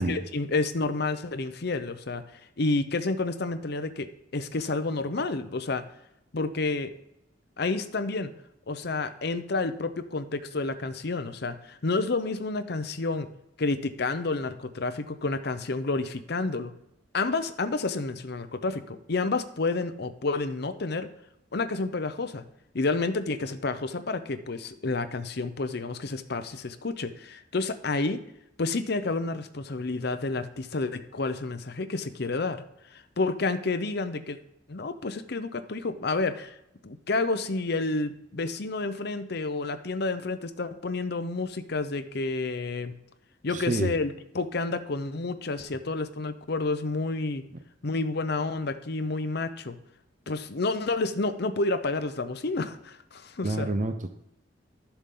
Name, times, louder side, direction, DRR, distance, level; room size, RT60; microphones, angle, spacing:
voice 1, 0.0-2.2 2.6-4.1 4.3-5.8 6.3-6.9 7.6-8.3 8.7-13.3 13.6-16.7 17.1-21.1 21.5-22.4 22.7-28.2 28.6-32.6 32.9-34.4 34.7-36.5 36.8-42.9 43.4-47.4 47.8-49.8 50.3-53.7, left 3 dB, 60° left, 10 dB, 0.8 m, -30 dB
voice 2, 43.5-44.0 53.4-54.1, right 2 dB, 45° right, 7 dB, 0.7 m, -28 dB
12.5 x 7.2 x 3.8 m, 0.82 s
head